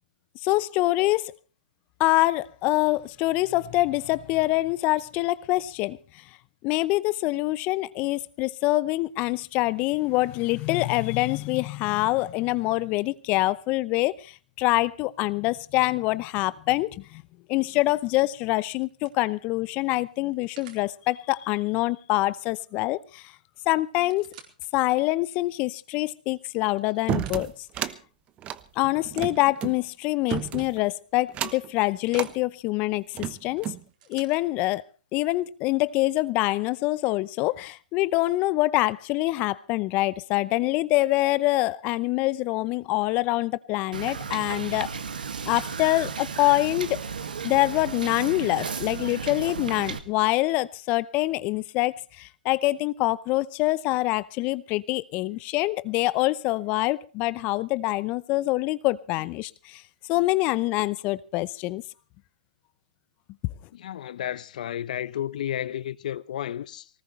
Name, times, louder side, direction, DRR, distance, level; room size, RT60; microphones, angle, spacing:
voice 1, 0.4-1.3 2.0-6.0 6.6-17.2 17.5-23.3 23.7-24.3 24.7-27.5 27.8-27.9 28.8-33.7 34.1-34.8 35.1-44.9 45.4-47.0 47.4-59.8 60.1-61.8, left 19 dB, 35° left, 0.7 m, -25 dB
sound 1, 17.9-18.2 18.8-20.9 22.9-23.0 23.3-23.4 23.9-24.7 25.3-25.4 26.1-27.7 29.4-30.7 31.4-32.4 33.6-34.4 35.4-35.5, right 8 dB, 55° right, 4.2 m, -53 dB
sound 2, 27.1-28.0 28.4-29.8 30.3-30.8 31.3-31.7 32.1-32.3 32.9-33.8, right 11 dB, 25° right, 1.0 m, -32 dB
Wind / Boat Water vehicle, 43.9-50.0, right 6 dB, 75° right, 2.0 m, -34 dB
voice 2, 63.7-66.9, left 11 dB, 60° left, 0.9 m, -32 dB
20.0 x 19.0 x 3.2 m
hypercardioid pair, 125°, 5 cm